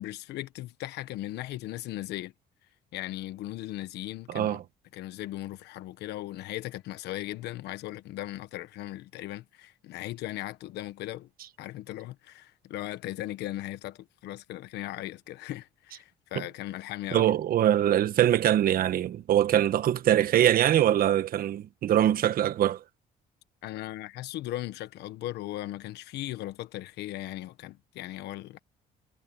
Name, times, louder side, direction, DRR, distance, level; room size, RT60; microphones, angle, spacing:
voice 1, 0.0-2.3 2.9-4.6 4.9-11.3 11.6-17.3 23.6-28.6, left 15 dB, 80° left, 1.3 m, -38 dB
voice 2, 4.3-4.6 17.1-22.8, right 11 dB, 60° right, 1.3 m, -23 dB
cardioid pair, 110°, 17 cm